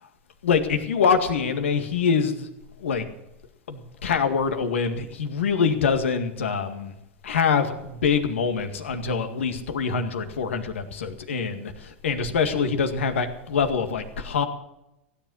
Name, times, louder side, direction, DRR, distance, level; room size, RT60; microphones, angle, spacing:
voice 1, 0.4-2.5 2.8-3.1 3.7-7.0 7.2-14.4, left 6 dB, 80° left, 7 dB, 1.9 m, -25 dB
16.5 x 10.0 x 6.4 m, 0.87 s
hypercardioid pair, 95°, 7 cm